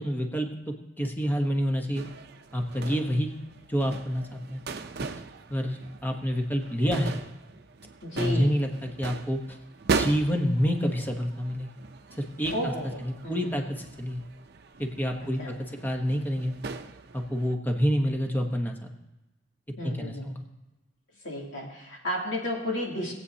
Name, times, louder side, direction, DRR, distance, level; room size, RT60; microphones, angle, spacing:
voice 1, 0.0-2.0 2.5-3.3 3.7-4.6 5.5-7.1 8.2-9.6 9.9-11.7 12.1-12.7 13.0-14.2 14.8-16.5 17.1-18.9 19.8-20.4, equal, 10° left, 3 dB, 1.0 m, -28 dB
sound 1, 2.0-17.5, right 4 dB, 55° right, 0.6 m, -38 dB
voice 2, 8.0-8.5 12.5-13.5 15.4-15.5 19.8-20.3 21.2-23.1, left 1 dB, 75° left, -3 dB, 2.9 m, -33 dB
20.0 x 8.3 x 2.8 m, 0.98 s
head